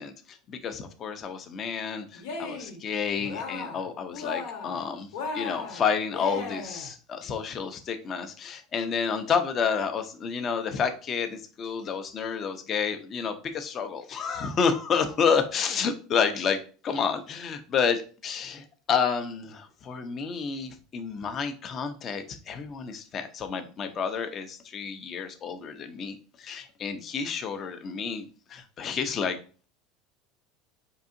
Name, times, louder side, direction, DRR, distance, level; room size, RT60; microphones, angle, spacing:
voice 1, 0.0-5.1 5.3-28.2 28.5-29.4, left 6 dB, 35° left, 8 dB, 0.6 m, -30 dB
Cheering, 2.1-2.8 3.2-3.9 4.1-4.8 5.1-6.9, left 4 dB, 85° left, 1.1 m, -36 dB
4.7 x 2.7 x 2.6 m, 0.38 s
supercardioid pair, 135°, 0 cm